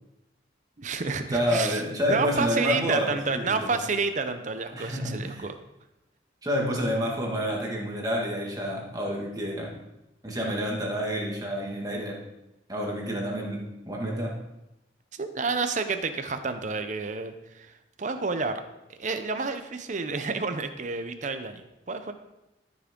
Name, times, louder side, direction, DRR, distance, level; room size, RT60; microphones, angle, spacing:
voice 1, 0.8-1.8 2.1-5.5 15.1-18.6 18.9-22.1, right 4 dB, 40° right, 8 dB, 0.7 m, -30 dB
voice 2, 1.3-3.8 4.7-5.5 6.4-9.7 10.2-12.2 12.7-14.3, equal, 20° right, -2 dB, 1.9 m, -29 dB
13.5 x 6.0 x 3.8 m, 0.94 s
head